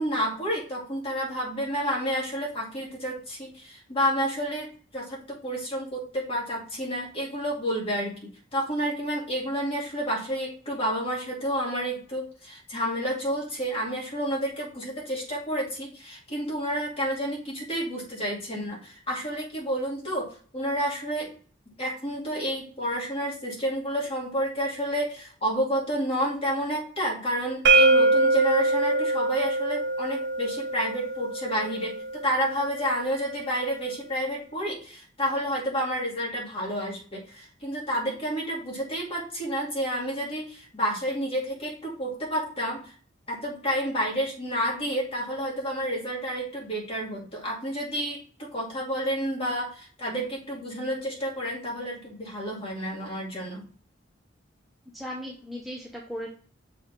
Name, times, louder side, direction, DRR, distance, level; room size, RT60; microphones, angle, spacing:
voice 1, 0.0-21.3 21.8-32.0 32.2-42.8 43.3-53.7, equal, 30° left, -3 dB, 2.4 m, -30 dB
sound 1, 27.7-33.5, right 3 dB, 60° right, 0.9 m, -24 dB
voice 2, 54.9-56.3, equal, ahead, -3 dB, 0.9 m, -37 dB
6.8 x 4.6 x 3.4 m, 0.42 s
head